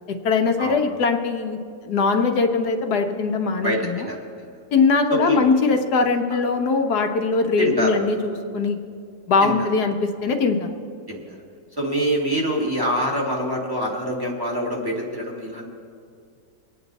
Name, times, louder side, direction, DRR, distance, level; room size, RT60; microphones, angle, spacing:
voice 1, 0.2-1.6 1.8-4.1 4.7-8.8 9.3-10.7, left 4 dB, 60° left, 5 dB, 1.4 m, -21 dB
voice 2, 3.6-4.5 5.1-5.4 7.6-8.0 9.4-9.5 11.1-11.4 11.8-15.7, equal, 10° right, -1 dB, 1.8 m, -25 dB
23.5 x 8.9 x 4.1 m, 2.3 s
omnidirectional pair, 2.0 m